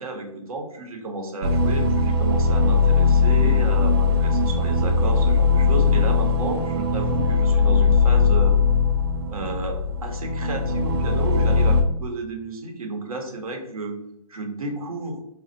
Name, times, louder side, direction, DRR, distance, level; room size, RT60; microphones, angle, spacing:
voice 1, 0.0-8.6 9.3-14.0 14.3-15.2, right 2 dB, 70° right, 3 dB, 0.9 m, -32 dB
sound 1, 1.4-11.8, left 4 dB, 40° right, 0.4 m, -20 dB
4.3 x 2.4 x 2.5 m, 0.79 s
hypercardioid pair, 140°, 19 cm